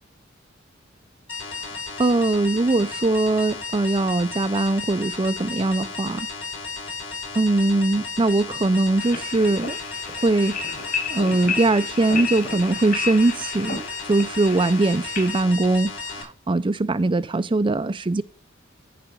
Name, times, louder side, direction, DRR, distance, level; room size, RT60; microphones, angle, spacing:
sound 1, 1.3-16.2, left 4 dB, 75° left, 6.0 m, -34 dB
voice 1, 2.0-6.3 7.3-9.8 10.1-18.2, right 2 dB, 25° right, 0.5 m, -21 dB
sound 2, 9.0-15.4, left 5 dB, 55° left, 3.8 m, -32 dB
14.5 x 5.0 x 7.2 m
head